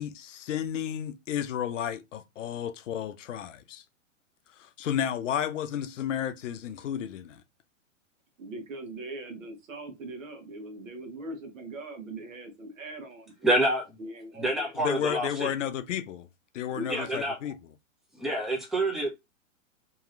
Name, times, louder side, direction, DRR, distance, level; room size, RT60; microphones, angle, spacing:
voice 1, 0.0-3.8 4.6-7.4 14.7-16.3 16.5-17.7, left 9 dB, 65° left, 0.6 m, -32 dB
voice 2, 8.4-13.3 14.0-14.7 16.7-17.1 17.4-17.5, right 2 dB, 75° right, 1.2 m, -40 dB
voice 3, 13.4-14.0 14.4-15.5 16.9-17.3 18.2-19.1, right 1 dB, ahead, 0.6 m, -27 dB
2.9 x 2.8 x 2.5 m
hypercardioid pair, 120°, 39 cm